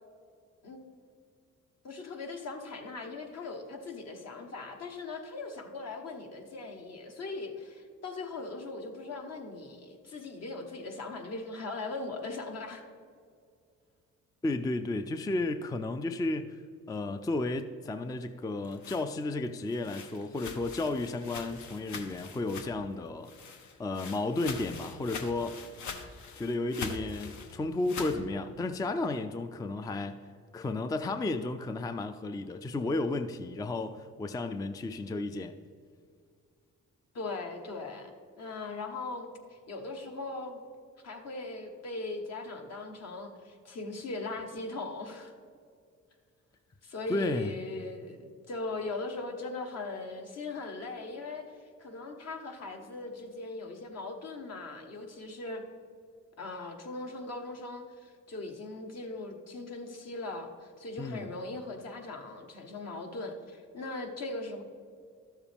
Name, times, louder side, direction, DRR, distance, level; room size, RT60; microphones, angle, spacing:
voice 1, 1.8-12.8 37.1-38.1 38.4-40.6 41.0-45.3 46.8-51.4 51.8-55.6 56.4-64.6, left 3 dB, 55° left, 4 dB, 1.3 m, -39 dB
voice 2, 14.4-16.6 16.9-23.3 23.8-25.6 26.4-30.2 30.5-35.5 47.1-47.5 61.0-61.3, left 2 dB, 15° left, 9 dB, 0.3 m, -33 dB
sound 1, 18.4-22.9 23.2-28.2, left 5 dB, 75° left, 1.0 m, -43 dB
12.5 x 7.2 x 3.5 m, 2.2 s
cardioid pair, 90°, 30 cm